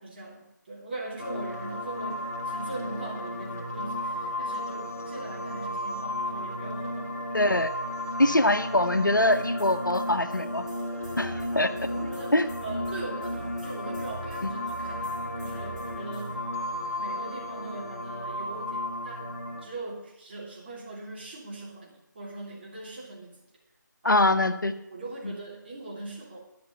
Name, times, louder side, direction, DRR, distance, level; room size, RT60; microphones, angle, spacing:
voice 1, 0.0-7.3 11.3-11.4 11.7-12.3 12.6-16.4 17.0-19.3 19.6-23.4 24.0-24.3 24.9-26.4, right 2 dB, 30° right, -4 dB, 3.1 m, -40 dB
sound 1, 1.2-19.6, left 1 dB, 45° left, 1.9 m, -34 dB
voice 2, 7.3-7.7 8.2-10.6 11.2-11.7 12.3-12.5 24.0-24.7 25.2-25.3, left 1 dB, 80° left, 9 dB, 1.0 m, -23 dB
sound 2, 9.3-16.3, right 2 dB, 15° left, 2.1 m, -44 dB
11.5 x 5.3 x 8.8 m, 0.89 s
figure-of-eight pair, 160°, 10 cm